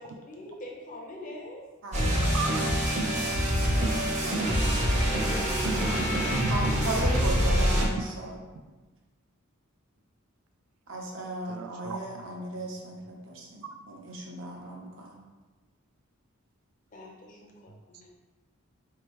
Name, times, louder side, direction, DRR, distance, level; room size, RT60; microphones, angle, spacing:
voice 1, 0.0-1.7 4.3-5.5 16.9-18.1, left 1 dB, 40° left, 0 dB, 0.7 m, -45 dB
voice 2, 1.8-2.7 6.5-8.4 10.9-15.1, right 1 dB, 60° right, -1 dB, 0.8 m, -36 dB
sound 1, 1.9-7.9, equal, 30° right, 0.8 m, -25 dB
voice 3, 11.5-12.2, right 5 dB, 80° right, 8 dB, 0.3 m, -38 dB
4.3 x 2.8 x 3.1 m, 1.2 s
head